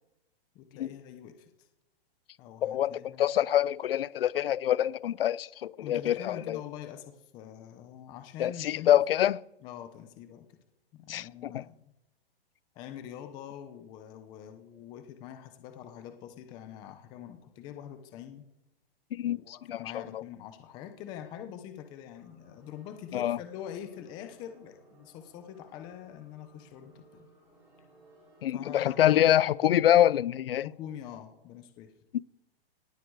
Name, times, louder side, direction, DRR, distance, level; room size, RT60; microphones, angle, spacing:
voice 1, 0.5-1.5 2.4-3.3 5.8-8.9 9.6-10.6 10.9-11.9 12.7-18.5 19.2-27.3 28.5-29.3 30.6-31.9, left 10 dB, 15° left, 0.8 m, -44 dB
voice 2, 2.6-6.6 8.4-9.4 11.1-11.6 19.1-20.2 23.1-23.4 28.4-30.7, left 11 dB, 70° left, 0.7 m, -26 dB
sound 1, 22.1-29.5, right 2 dB, 10° right, 4.2 m, -60 dB
19.0 x 16.0 x 4.8 m
hypercardioid pair, 175°, 30 cm